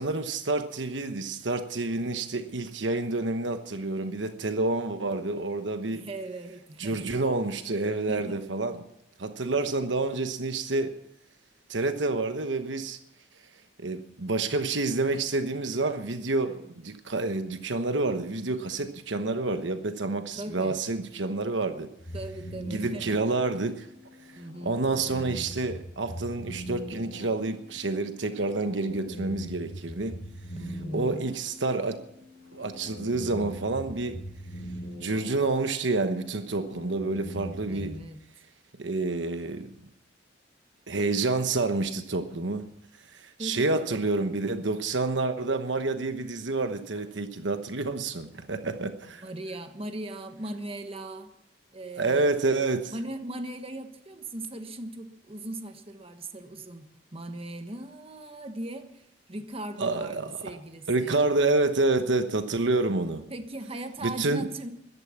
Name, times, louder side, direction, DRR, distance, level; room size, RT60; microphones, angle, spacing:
voice 1, 0.0-6.1 6.8-8.8 9.2-10.9 11.7-13.0 13.8-21.9 22.7-23.9 24.6-30.2 30.9-32.0 32.5-34.2 35.0-37.9 38.8-39.8 40.9-42.7 43.1-49.2 52.0-52.9 59.8-60.5 60.9-63.2 64.0-64.5, right 3 dB, 75° right, 1.1 m, -28 dB
voice 2, 5.9-7.1 8.1-8.4 9.6-9.7 20.3-20.8 22.1-23.2 24.3-24.8 30.5-31.3 37.7-38.2 43.4-44.0 49.2-51.3 51.7-52.4 52.9-61.2 63.3-64.7, right 1 dB, 30° right, 1.4 m, -38 dB
sound 1, 22.0-38.0, equal, 55° left, 4.5 m, -42 dB
14.5 x 12.0 x 7.3 m
head